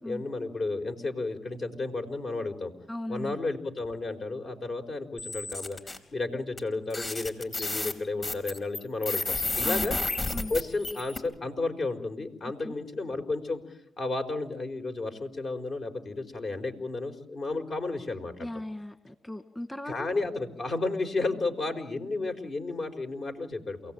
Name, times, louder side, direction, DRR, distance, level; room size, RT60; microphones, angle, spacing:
voice 1, 0.0-2.7 3.1-5.8 6.1-9.2 9.6-10.0 10.5-13.6 14.0-18.5 19.9-23.9, left 3 dB, 55° left, 5 dB, 4.8 m, -32 dB
voice 2, 2.9-3.4 9.6-9.9 10.3-10.5 12.6-12.8 18.4-20.1, left 1 dB, 15° left, 9 dB, 2.0 m, -37 dB
sound 1, 5.2-6.0 6.6-6.7 6.9-11.2, left 2 dB, 35° left, 4.6 m, -31 dB
28.5 x 17.5 x 9.1 m, 0.76 s
supercardioid pair, 55°, 0 cm